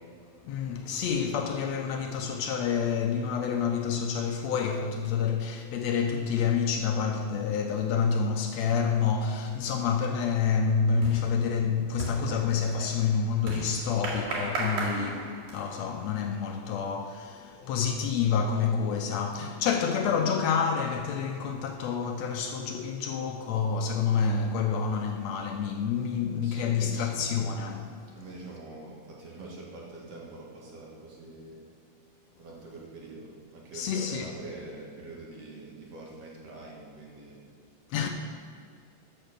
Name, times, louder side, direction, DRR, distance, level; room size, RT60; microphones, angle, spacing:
voice 1, 0.5-27.9 33.7-34.4 37.9-38.1, left 6 dB, 75° left, 1.8 m, -28 dB
sound 1, 9.6-9.8 10.1-15.9, right 2 dB, 85° right, 3.7 m, -36 dB
voice 2, 26.3-27.1 28.1-31.6 32.4-37.4, right 2 dB, 60° right, 2.8 m, -45 dB
12.0 x 6.6 x 6.8 m
omnidirectional pair, 3.4 m